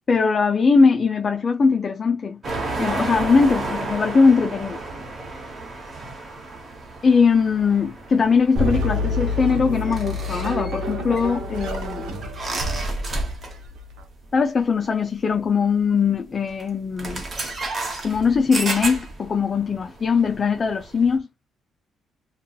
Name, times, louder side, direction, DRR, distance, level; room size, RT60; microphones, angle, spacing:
voice 1, 0.1-2.4 2.8-4.8 7.0-12.2 14.3-17.2 18.0-21.3, left 5 dB, 40° left, 0.3 m, -20 dB
sound 1, 2.4-13.7 14.0-14.2 15.4-15.5 16.5-16.7 17.0-21.2, right 2 dB, 40° right, 1.0 m, -32 dB
sound 2, 8.5-14.0, left 2 dB, 80° right, 0.7 m, -28 dB
2.7 x 2.2 x 2.3 m
cardioid pair, 90°, 0 cm